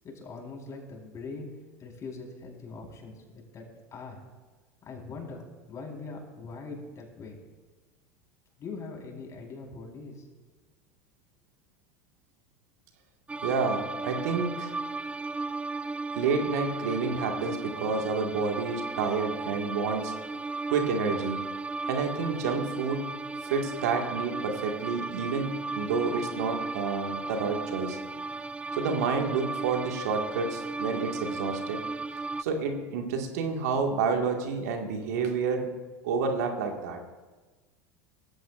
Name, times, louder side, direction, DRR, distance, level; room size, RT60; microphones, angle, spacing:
voice 1, 0.0-1.5 1.8-3.6 3.9-4.2 4.9-5.4 5.7-7.4 8.6-10.2, left 4 dB, 40° left, 0 dB, 4.3 m, -41 dB
sound 1, 13.3-32.4, right 3 dB, 15° right, 0.5 m, -35 dB
voice 2, 13.4-14.7 16.1-20.1 20.7-21.4 21.9-23.0 23.4-28.0 28.8-31.8 32.4-35.7 36.0-37.0, right 4 dB, 75° right, 3 dB, 1.9 m, -29 dB
19.0 x 15.0 x 2.5 m, 1.3 s
hypercardioid pair, 85°, 9 cm